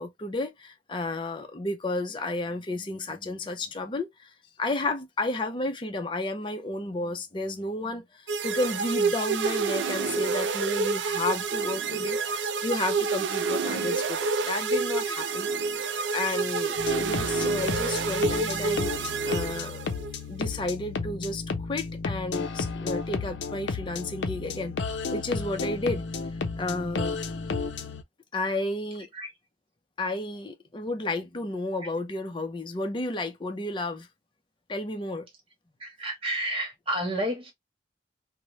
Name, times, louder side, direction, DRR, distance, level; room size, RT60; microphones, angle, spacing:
voice 1, 0.0-4.3 4.6-18.9 19.2-19.9 20.3-24.8 25.1-27.2 28.3-29.1 30.0-34.1 34.7-35.3, left 2 dB, 25° left, 0.5 m, -32 dB
sound 1, 8.3-20.1, right 4 dB, 85° right, 0.4 m, -28 dB
sound 2, 16.8-28.0, left 4 dB, 85° left, 0.5 m, -32 dB
voice 2, 35.8-37.5, right 1 dB, 30° right, 1.0 m, -30 dB
2.9 x 2.0 x 3.0 m
head